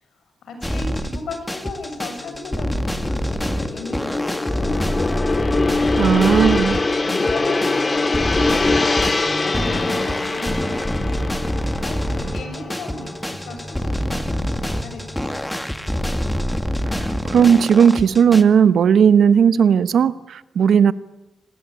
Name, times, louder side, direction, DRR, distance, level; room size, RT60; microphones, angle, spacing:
voice 1, 0.4-5.0 5.3-15.6, left 3 dB, 85° left, 6 dB, 7.5 m, -36 dB
sound 1, 0.6-18.4, equal, 5° left, 2.1 m, -26 dB
Gong, 1.7-14.2 14.5-14.8, left 3 dB, 30° left, 2.0 m, -24 dB
voice 2, 6.0-6.8 17.0-20.9, right 7 dB, 75° right, 15 dB, 1.0 m, -15 dB
sound 2, 9.2-16.4, right 1 dB, 15° right, 4.0 m, -41 dB
26.5 x 19.5 x 10.0 m, 0.98 s
cardioid pair, 80°, 0 cm